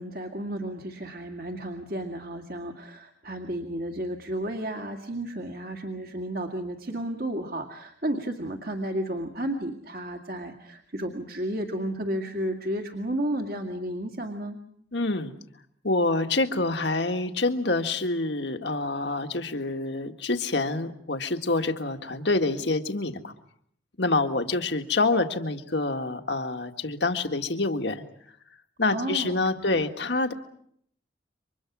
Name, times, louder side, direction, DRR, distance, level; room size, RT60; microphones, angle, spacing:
voice 1, 0.0-14.6 28.9-29.9, right 1 dB, 50° right, 4 dB, 2.2 m, -32 dB
voice 2, 14.9-15.3 15.8-23.3 24.0-28.0 28.8-30.3, left 2 dB, 65° left, 7 dB, 1.8 m, -27 dB
29.0 x 25.0 x 6.2 m, 0.69 s
head